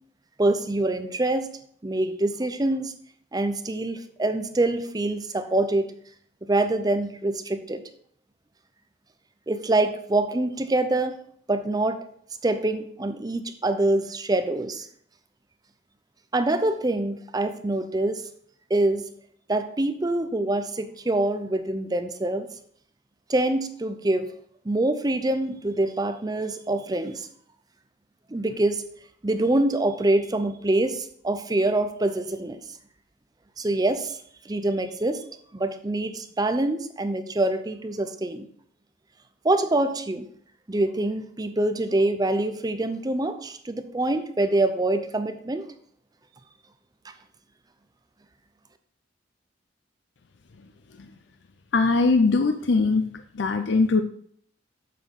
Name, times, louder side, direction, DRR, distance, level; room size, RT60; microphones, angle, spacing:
voice 1, 0.4-1.5 1.8-2.9 3.3-5.9 6.4-7.8 9.5-11.2 11.5-12.0 12.4-14.9 16.3-18.3 18.7-19.0 19.5-22.5 23.3-24.3 24.6-27.3 28.3-28.8 29.2-32.6 33.6-34.2 34.4-35.2 35.5-38.5 39.4-40.3 40.7-45.6, right 2 dB, 20° right, 9 dB, 0.5 m, -25 dB
voice 2, 51.7-54.0, left 3 dB, 70° left, 8 dB, 0.5 m, -21 dB
7.5 x 4.4 x 5.2 m, 0.63 s
head